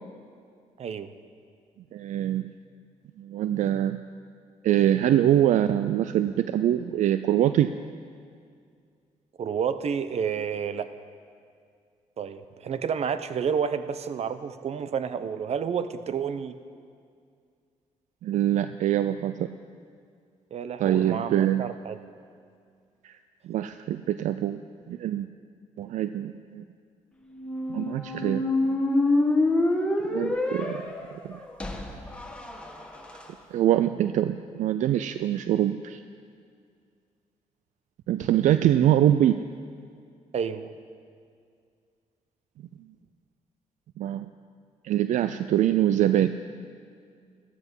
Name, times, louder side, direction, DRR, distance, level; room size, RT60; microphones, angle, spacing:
voice 1, 0.8-1.1 9.4-10.9 12.2-16.5 20.5-22.0 40.3-40.7, right 7 dB, 55° right, 12 dB, 0.8 m, -30 dB
voice 2, 1.9-2.5 3.2-4.0 4.6-7.7 18.2-19.5 20.8-21.6 23.0-23.2 23.4-24.6 24.9-25.3 25.8-26.6 27.7-28.5 30.1-30.8 31.2-31.4 33.5-36.0 38.1-39.4 44.0-44.3 44.8-46.3, right 11 dB, 75° right, 11 dB, 0.4 m, -24 dB
sound 1, 27.3-33.2, left 2 dB, 10° left, 1.7 m, -27 dB
14.5 x 14.0 x 5.5 m, 2.2 s
cardioid pair, 85°, 13 cm